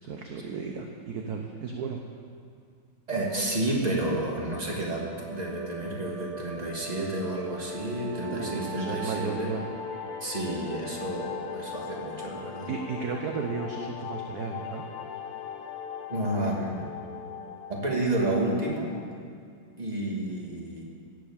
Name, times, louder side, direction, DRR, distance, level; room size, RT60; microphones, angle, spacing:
voice 1, 0.0-2.0 8.3-9.6 12.7-14.8, right 5 dB, 55° right, 2 dB, 1.2 m, -34 dB
voice 2, 3.1-9.5 10.2-12.7 16.1-16.9 17.7-19.0 19.8-20.8, right 1 dB, 20° right, -2 dB, 2.2 m, -30 dB
sound 1, 3.3-18.6, right 2 dB, 85° right, 2.1 m, -43 dB
sound 2, 8.1-19.2, left 8 dB, 90° left, 1.8 m, -41 dB
17.0 x 8.5 x 7.3 m, 2.3 s
omnidirectional pair, 2.3 m